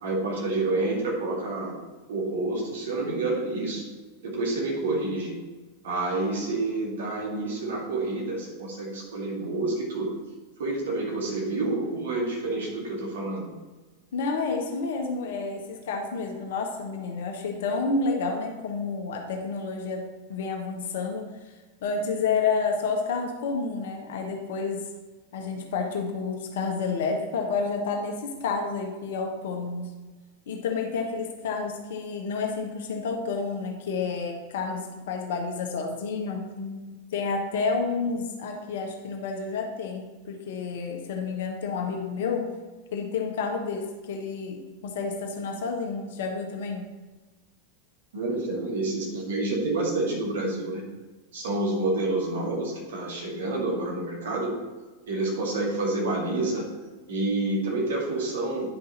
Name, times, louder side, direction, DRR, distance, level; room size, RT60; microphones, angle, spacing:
voice 1, 0.0-1.7 2.1-3.8 4.2-5.4 5.8-10.1 10.6-13.5 48.1-50.8 51.3-54.5 55.1-56.7 57.1-58.8, right 2 dB, 60° right, -2 dB, 2.3 m, -28 dB
voice 2, 14.1-21.3 21.8-24.9 25.3-29.9 30.5-42.5 42.9-46.9, left 4 dB, 55° left, 2 dB, 1.3 m, -30 dB
10.0 x 5.5 x 4.1 m, 1.2 s
figure-of-eight pair, 90°, 0 cm